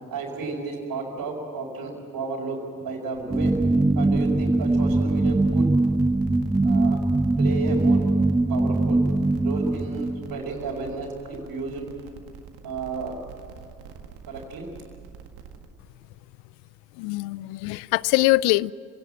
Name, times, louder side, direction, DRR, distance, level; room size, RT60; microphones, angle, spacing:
voice 1, 0.1-3.5 3.9-5.6 6.6-7.0 7.4-8.0 8.5-9.0 9.4-11.8 12.6-13.1 14.3-14.6, right 3 dB, 60° right, -4 dB, 4.9 m, -32 dB
sound 1, 3.1-15.7, right 7 dB, 80° right, 1.9 m, -45 dB
sound 2, 3.3-10.4, right 2 dB, 10° right, 0.6 m, -22 dB
voice 2, 16.9-18.7, left 21 dB, 75° left, 22 dB, 0.5 m, -22 dB
25.0 x 17.5 x 7.7 m, 2.6 s
hypercardioid pair, 40°, 39 cm